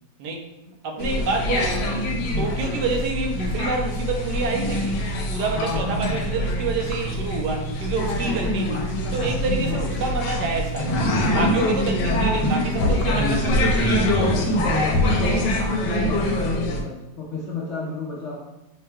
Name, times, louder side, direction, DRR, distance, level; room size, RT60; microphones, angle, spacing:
voice 1, 0.2-1.8 2.4-5.0 5.3-8.8 9.1-11.1 11.3-13.9, right 3 dB, 75° right, 2 dB, 1.2 m, -28 dB
sound 1, 1.0-16.8, left 1 dB, 80° left, 1.3 m, -24 dB
voice 2, 5.5-6.2 8.2-8.5 9.7-9.8 11.7-11.8 14.1-18.5, left 3 dB, 65° left, -5 dB, 0.7 m, -32 dB
4.5 x 2.2 x 3.4 m, 0.95 s
omnidirectional pair, 1.8 m